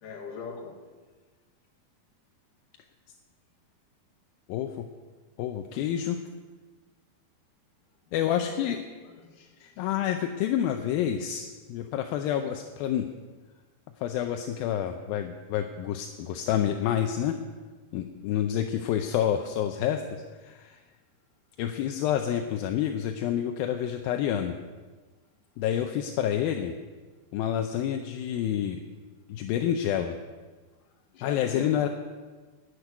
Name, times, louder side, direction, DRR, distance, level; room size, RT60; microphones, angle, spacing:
voice 1, 0.0-0.9 8.2-8.5 9.2-9.5 31.1-31.9, left 5 dB, 60° left, 2.9 m, -40 dB
voice 2, 4.5-4.9 5.4-6.2 8.1-8.8 9.6-13.1 14.0-17.4 17.9-20.8 21.6-24.6 25.6-26.7 27.3-28.8 29.3-30.2 31.2-31.9, left 10 dB, 80° left, 2.3 m, -28 dB
10.5 x 8.2 x 9.9 m
omnidirectional pair, 4.6 m